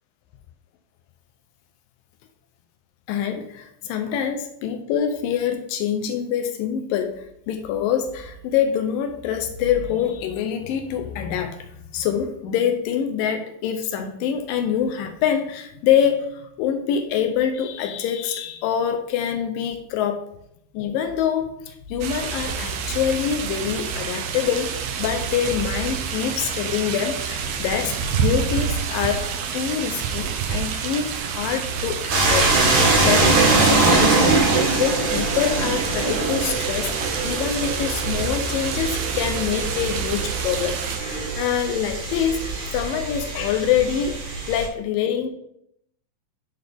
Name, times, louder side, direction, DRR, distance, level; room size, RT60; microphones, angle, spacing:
voice 1, 3.1-20.2 20.7-44.2 44.5-45.3, left 8 dB, 85° left, 5 dB, 2.3 m, -25 dB
sound 1, 22.0-41.0, right 6 dB, 80° right, 1.5 m, -28 dB
sound 2, 32.1-44.7, right 3 dB, 60° right, 2.5 m, -22 dB
11.0 x 4.0 x 3.5 m, 0.74 s
omnidirectional pair, 3.9 m